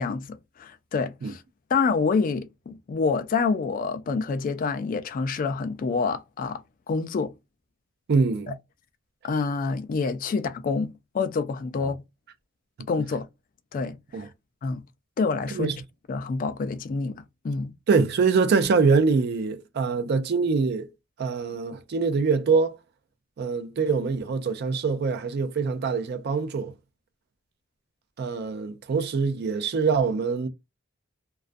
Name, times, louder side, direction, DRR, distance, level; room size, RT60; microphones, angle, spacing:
voice 1, 0.0-1.4 1.7-6.6 6.9-7.3 9.2-12.0 12.9-13.3 13.7-14.2 14.6-14.8 15.2-15.7 16.1-17.7, left 4 dB, 40° left, 0.3 m, -27 dB
voice 2, 8.1-8.6 11.8-11.9 14.1-14.3 15.5-15.8 17.9-20.9 21.2-22.8 23.4-26.7 28.2-30.5, right 4 dB, 55° right, 0.4 m, -24 dB
2.4 x 2.1 x 2.5 m
head